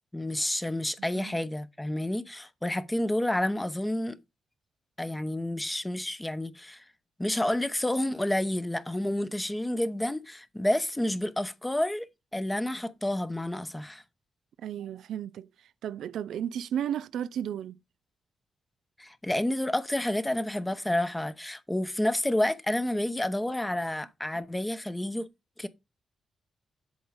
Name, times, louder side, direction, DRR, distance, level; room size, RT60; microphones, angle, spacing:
voice 1, 0.1-4.2 5.0-6.8 7.2-12.1 12.3-14.0 19.0-25.3 25.6-25.7, left 1 dB, 10° left, 0.8 m, -29 dB
voice 2, 14.6-17.8, right 9 dB, 90° right, 0.3 m, -34 dB
8.0 x 3.9 x 5.0 m
cardioid pair, 85°, 0 cm